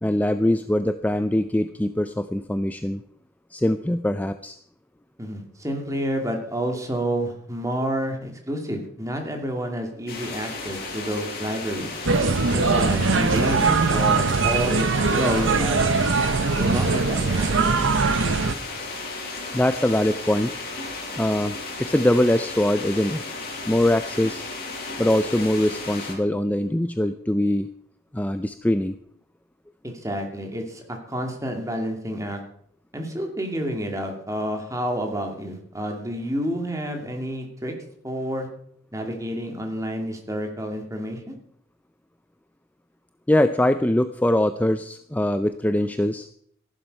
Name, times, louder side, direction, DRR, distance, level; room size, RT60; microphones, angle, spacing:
voice 1, 0.0-3.0 3.5-4.6 19.5-20.6 21.1-23.2 23.7-24.4 25.0-27.7 28.1-29.0 43.3-46.3, left 1 dB, 10° left, 10 dB, 0.5 m, -22 dB
voice 2, 5.2-11.9 12.5-14.8 15.1-15.8 16.6-17.8 29.8-32.4 32.9-37.7 38.0-38.5 38.9-41.4, equal, 15° right, 3 dB, 2.6 m, -29 dB
sound 1, 10.1-26.1, left 3 dB, 50° left, 6.5 m, -34 dB
sound 2, 12.0-18.5, right 4 dB, 85° right, 0.9 m, -21 dB
14.5 x 11.5 x 5.5 m, 0.66 s
head